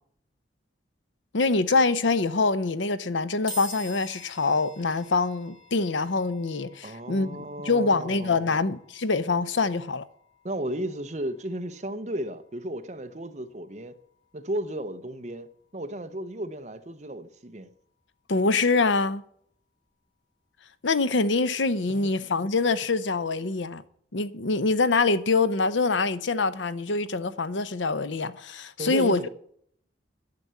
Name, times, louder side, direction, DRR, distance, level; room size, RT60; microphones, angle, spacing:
voice 1, 1.3-10.0 18.3-19.2 20.8-23.8 24.1-29.2, left 3 dB, 75° left, 0.7 m, -25 dB
sound 1, 3.5-16.8, equal, 25° left, 2.5 m, -49 dB
voice 2, 6.8-8.6 10.4-13.9 14.3-17.7 21.9-22.1 28.8-29.3, right 1 dB, 35° right, 0.9 m, -34 dB
10.5 x 6.9 x 9.4 m
head